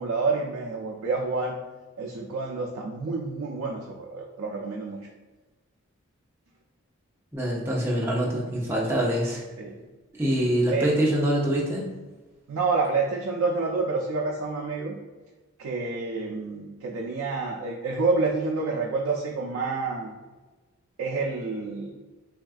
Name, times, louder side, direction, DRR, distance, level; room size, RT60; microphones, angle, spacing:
voice 1, 0.0-1.6 2.0-5.0 9.6-9.8 10.7-11.0 12.5-15.0 15.6-20.1 21.0-21.9, right 3 dB, 90° right, -1 dB, 0.4 m, -28 dB
voice 2, 7.3-9.4 10.2-11.9, right 1 dB, 10° right, -4 dB, 0.5 m, -25 dB
3.5 x 2.3 x 2.3 m, 1.3 s
head